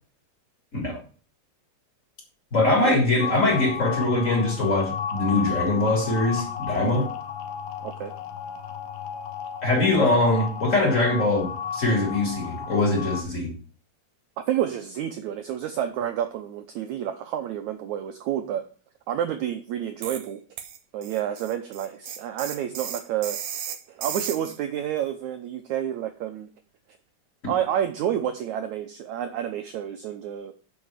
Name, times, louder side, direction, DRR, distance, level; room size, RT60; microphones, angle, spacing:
voice 1, 2.5-7.1 9.6-13.5, left 2 dB, 20° left, 0 dB, 3.1 m, -22 dB
sound 1, 3.2-13.2, left 8 dB, 70° left, 2.7 m, -33 dB
voice 2, 14.5-18.6 19.1-20.4 20.9-23.4 23.7-26.5 27.5-30.5, right 10 dB, 90° right, 7 dB, 1.6 m, -29 dB
sound 2, 20.0-20.3 20.6-24.6, right 9 dB, 65° right, 2.0 m, -35 dB
7.8 x 6.7 x 7.1 m, 0.40 s
omnidirectional pair, 4.3 m